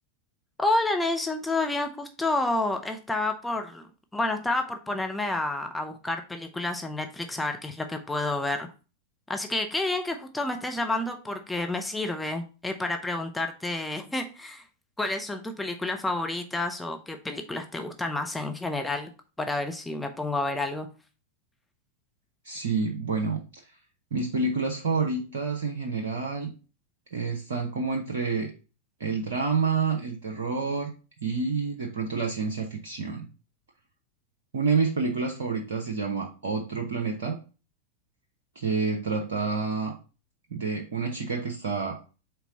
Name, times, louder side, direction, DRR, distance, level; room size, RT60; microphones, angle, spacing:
voice 1, 0.6-8.7 9.3-14.6 15.0-19.1 19.4-20.9, left 2 dB, 5° left, 5 dB, 0.7 m, -29 dB
voice 2, 22.4-23.6 24.1-26.5 27.1-28.5 29.0-30.9 31.2-33.3 34.5-37.4 38.5-39.9 40.5-42.0, right 4 dB, 65° right, 1 dB, 0.8 m, -28 dB
4.5 x 4.0 x 5.3 m, 0.34 s
figure-of-eight pair, 90°, 0 cm